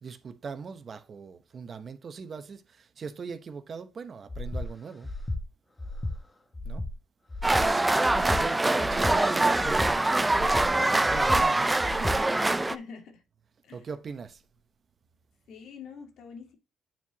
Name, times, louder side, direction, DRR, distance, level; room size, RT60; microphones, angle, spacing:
voice 1, 0.0-5.1 6.6-6.8 8.4-10.0 10.8-12.1 13.7-14.4, right 5 dB, 45° right, 1.0 m, -40 dB
Breathing, 4.3-4.7 5.0-5.4 5.8-6.2 6.5-6.9 7.3-7.7 8.0-8.4 8.8-9.2 9.5-9.9 10.3-10.7 11.1-11.4 11.8-12.2, left 2 dB, 20° left, 1.3 m, -33 dB
sound 1, 7.4-12.8, right 2 dB, 15° right, 0.5 m, -24 dB
voice 2, 12.5-13.2 13.6-13.9 15.5-16.6, left 5 dB, 75° left, 2.2 m, -45 dB
9.2 x 4.6 x 2.9 m
cardioid pair, 90°, 0 cm